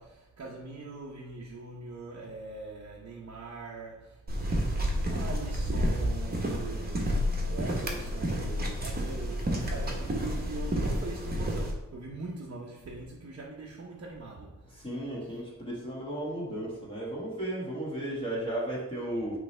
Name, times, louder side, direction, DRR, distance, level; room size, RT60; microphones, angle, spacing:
voice 1, 0.0-4.5 5.1-14.7 15.3-15.4 19.1-19.3, right 3 dB, 55° right, 0.8 m, -42 dB
sound 1, 4.3-11.7, equal, 30° right, 1.1 m, -30 dB
voice 2, 14.7-19.4, right 1 dB, 15° left, 1.7 m, -34 dB
8.9 x 3.3 x 3.3 m
wide cardioid pair, 155°, 31 cm